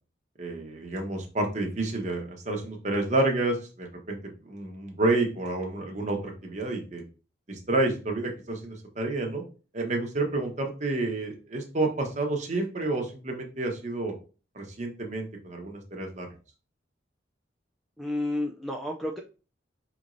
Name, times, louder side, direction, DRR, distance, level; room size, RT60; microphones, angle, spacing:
voice 1, 0.4-4.2 4.5-7.0 7.5-9.4 9.7-14.1 14.5-16.3, right 2 dB, 40° right, 2 dB, 0.9 m, -29 dB
voice 2, 18.0-19.2, left 1 dB, ahead, 1 dB, 0.3 m, -31 dB
5.0 x 3.0 x 2.5 m, 0.35 s
head